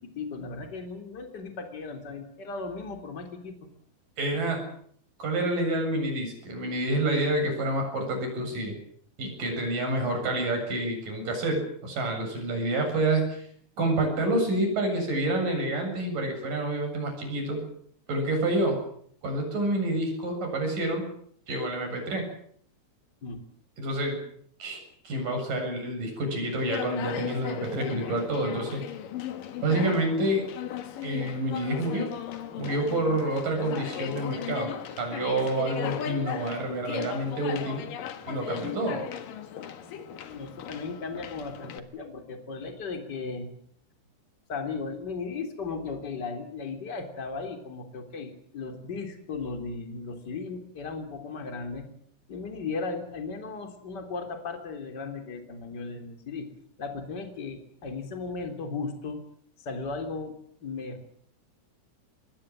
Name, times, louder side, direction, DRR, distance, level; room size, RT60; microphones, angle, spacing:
voice 1, 0.0-3.7 23.2-23.4 40.2-43.5 44.5-51.9 52.3-56.5 56.8-59.2 59.6-61.1, left 4 dB, 25° left, 6 dB, 3.3 m, -36 dB
voice 2, 4.2-4.6 5.2-8.7 9.2-13.5 13.8-17.6 18.1-18.8 19.2-21.1 21.5-22.3 23.8-24.2 24.6-24.8 25.0-28.8 29.6-30.5 31.0-32.1 32.6-34.7 35.0-37.9 38.3-39.0, right 1 dB, 45° right, 4 dB, 8.9 m, -28 dB
Conversation, 26.6-41.8, left 9 dB, 60° left, 2.6 m, -37 dB
25.0 x 22.0 x 7.7 m, 0.63 s
omnidirectional pair, 5.6 m